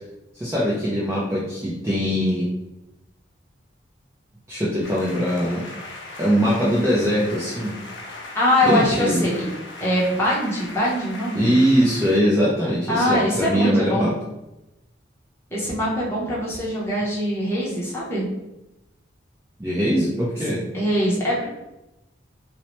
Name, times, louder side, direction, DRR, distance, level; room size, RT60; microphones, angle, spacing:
voice 1, 0.3-2.5 4.5-5.7 6.2-7.8 8.6-9.3 11.3-14.1 19.6-20.6, equal, 15° right, -7 dB, 0.4 m, -21 dB
sound 1, 4.8-12.2, left 2 dB, 65° left, 0.4 m, -39 dB
voice 2, 8.3-9.5 9.8-11.5 12.9-14.1 15.5-18.3 20.7-21.5, left 1 dB, 15° left, -7 dB, 0.7 m, -23 dB
2.8 x 2.0 x 3.0 m, 0.95 s
head